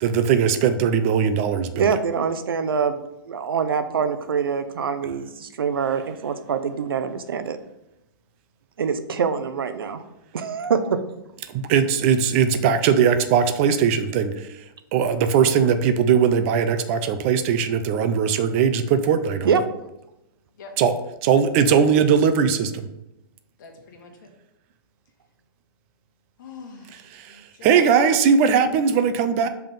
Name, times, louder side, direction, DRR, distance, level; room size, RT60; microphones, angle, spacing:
voice 1, 0.0-1.9 11.5-14.5 14.9-19.5 20.8-20.9 21.2-22.9 27.1-29.5, right 7 dB, 35° right, 10 dB, 0.5 m, -20 dB
voice 2, 1.7-3.0 3.3-7.6 8.8-10.0 10.3-11.0 19.4-19.6, right 6 dB, 85° right, 10 dB, 0.6 m, -24 dB
voice 3, 23.6-24.3 26.4-28.2, left 4 dB, 60° left, 2 dB, 1.4 m, -42 dB
5.7 x 3.5 x 5.1 m, 0.89 s
hypercardioid pair, 140°, 12 cm